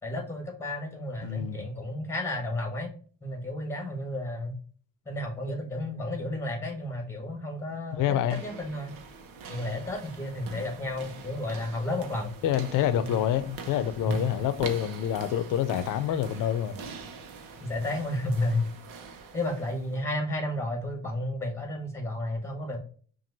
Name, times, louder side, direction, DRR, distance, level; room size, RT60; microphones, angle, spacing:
voice 1, 0.0-2.9 3.2-4.5 5.0-8.9 9.5-12.3 12.9-13.1 14.0-14.3 17.6-18.7 19.3-22.8, left 1 dB, 10° left, 1.4 m, -32 dB
voice 2, 1.2-1.7 7.9-8.4 12.4-16.8, left 10 dB, 70° left, 0.6 m, -27 dB
sound 1, 8.1-20.0, right 5 dB, 90° right, 0.9 m, -44 dB
5.8 x 2.6 x 2.7 m
cardioid pair, 145°, 33 cm